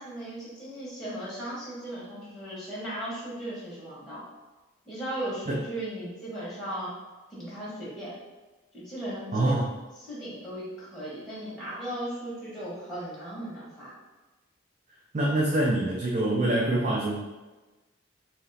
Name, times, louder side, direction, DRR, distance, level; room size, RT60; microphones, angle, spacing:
voice 1, 0.0-4.2 4.8-7.0 7.3-8.1 8.7-9.6 10.0-13.9, right 1 dB, ahead, -9 dB, 1.2 m, -37 dB
voice 2, 9.3-9.7 15.1-17.3, right 1 dB, 35° right, -3 dB, 0.4 m, -25 dB
3.0 x 2.9 x 4.0 m, 1.2 s
head